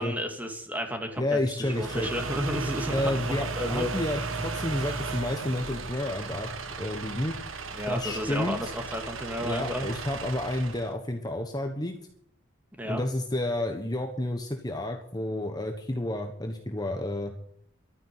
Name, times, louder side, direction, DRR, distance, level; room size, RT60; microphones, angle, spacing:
voice 1, 0.0-3.9 7.7-9.9 12.8-13.0, equal, 10° right, 4 dB, 2.4 m, -32 dB
voice 2, 1.2-2.1 2.9-6.5 6.8-7.3 7.9-8.7 9.4-12.0 12.9-17.3, left 1 dB, 20° left, 4 dB, 1.3 m, -30 dB
sound 1, 1.6-10.9, right 4 dB, 80° right, 1.6 m, -35 dB
12.5 x 9.8 x 9.7 m, 0.65 s
head